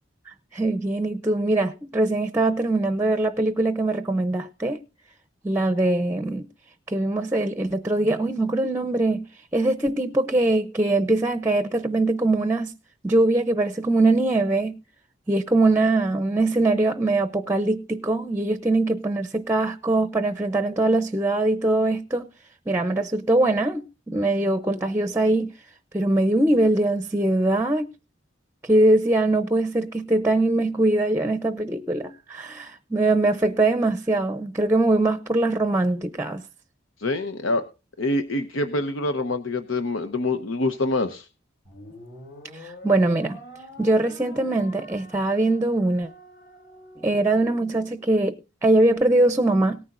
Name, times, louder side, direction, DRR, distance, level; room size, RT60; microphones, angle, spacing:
voice 1, 0.3-4.8 5.4-6.5 6.9-9.3 9.5-12.7 13.0-14.8 15.3-22.3 22.7-25.5 25.9-27.9 28.6-36.4 42.5-43.4 43.8-46.1 47.0-48.4 48.6-49.8, right 2 dB, 10° right, 0.6 m, -22 dB
voice 2, 37.0-37.7 38.0-41.3, left 2 dB, 85° left, 0.9 m, -25 dB
sound 1, 41.6-48.1, left 2 dB, 60° left, 3.4 m, -46 dB
18.5 x 9.9 x 2.5 m
head